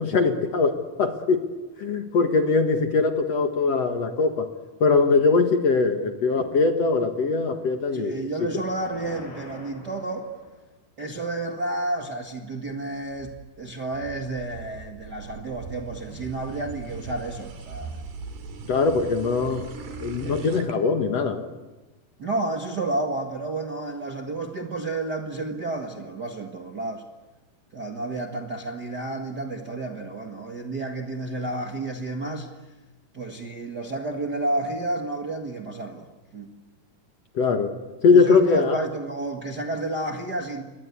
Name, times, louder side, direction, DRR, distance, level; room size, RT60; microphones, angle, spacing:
voice 1, 0.0-1.4 1.8-4.5 4.8-8.2 18.7-19.6 20.0-21.5 37.4-38.8, left 4 dB, 55° left, 5 dB, 2.2 m, -21 dB
voice 2, 7.9-10.3 11.0-18.0 20.2-20.4 22.2-27.0 27.7-32.5 33.1-36.1 36.3-36.5 38.1-40.6, right 2 dB, 40° right, 1 dB, 1.6 m, -31 dB
sound 1, 8.4-10.8, left 1 dB, 85° left, 8.4 m, -44 dB
sound 2, 13.0-20.7, right 4 dB, 85° right, 4.5 m, -40 dB
29.0 x 22.5 x 8.4 m, 1.2 s
omnidirectional pair, 4.3 m